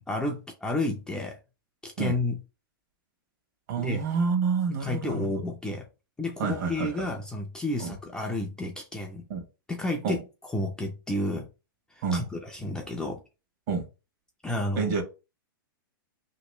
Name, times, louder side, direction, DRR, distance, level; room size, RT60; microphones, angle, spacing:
voice 1, 0.1-1.4 1.8-2.4 3.8-4.0 4.8-5.8 6.2-9.2 9.7-10.2 10.5-11.5 11.9-13.2 14.4-14.9, left 2 dB, 5° left, 0.3 m, -31 dB
voice 2, 3.7-5.4 6.4-7.1 7.8-7.9 9.3-9.4 10.0-10.2 12.0-12.3 13.7-13.8 14.8-15.0, right 5 dB, 50° right, 1.1 m, -28 dB
3.0 x 2.9 x 3.1 m
hypercardioid pair, 150°, 12 cm